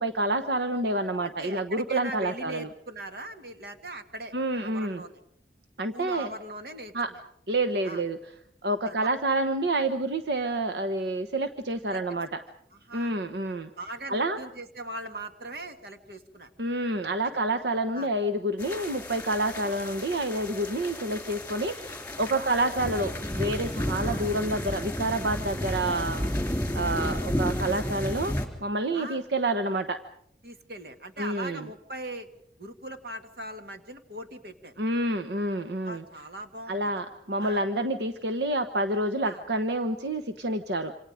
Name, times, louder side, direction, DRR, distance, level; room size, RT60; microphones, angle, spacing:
voice 1, 0.0-2.7 4.3-5.0 5.8-6.3 6.9-7.1 7.5-8.2 8.6-12.3 12.9-13.7 14.1-14.4 16.6-26.3 26.7-28.3 28.6-30.0 31.2-31.6 34.8-36.0 36.7-40.9, right 1 dB, 80° right, 8 dB, 1.1 m, -28 dB
voice 2, 1.2-5.2 5.9-7.2 7.8-8.0 8.8-8.9 11.9-12.0 12.7-13.2 13.8-16.5 17.2-17.3 17.9-18.1 22.3-22.5 24.0-24.3 28.9-29.2 30.4-32.3 32.6-34.7 35.8-36.9 37.4-37.6 39.2-39.4, right 1 dB, 60° right, 6 dB, 2.1 m, -40 dB
sound 1, 18.6-28.5, left 1 dB, 10° left, 3.3 m, -32 dB
27.5 x 26.5 x 5.1 m, 0.69 s
head